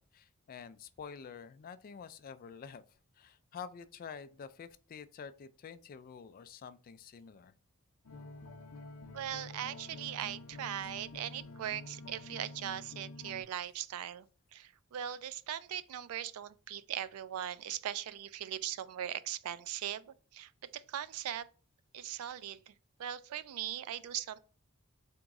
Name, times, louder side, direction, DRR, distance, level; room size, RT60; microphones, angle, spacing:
voice 1, 0.0-2.8 3.2-7.5, left 6 dB, 40° left, 0.3 m, -48 dB
sound 1, 8.0-13.4, left 2 dB, 75° left, 0.6 m, -48 dB
voice 2, 9.1-14.3 14.5-21.5 21.9-22.7 23.0-24.4, right 10 dB, 80° right, 0.3 m, -40 dB
3.7 x 3.0 x 3.6 m
head